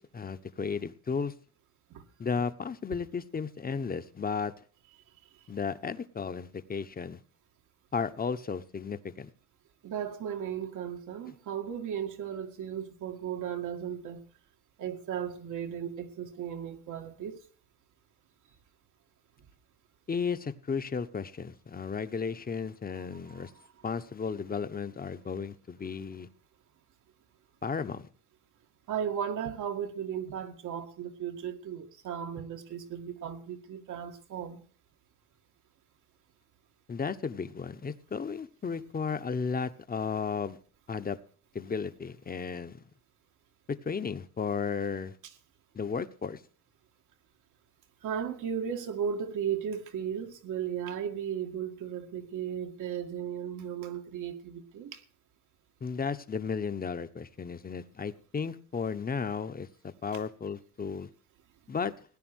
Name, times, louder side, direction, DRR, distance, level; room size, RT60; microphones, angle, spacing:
voice 1, 0.0-1.3 2.2-4.5 5.5-7.2 7.9-9.3 20.1-23.5 23.8-26.3 27.6-28.1 36.9-40.6 40.9-41.2 41.5-42.8 43.8-45.1 45.7-46.4 55.8-61.1 61.7-61.9, left 5 dB, 30° left, 1.2 m, -34 dB
voice 2, 9.8-14.2 14.8-17.4 19.4-19.5 23.0-23.8 28.9-34.6 45.2-45.3 48.0-55.0, right 8 dB, 80° right, 2.3 m, -36 dB
17.0 x 10.0 x 6.4 m
cardioid pair, 90°, 30 cm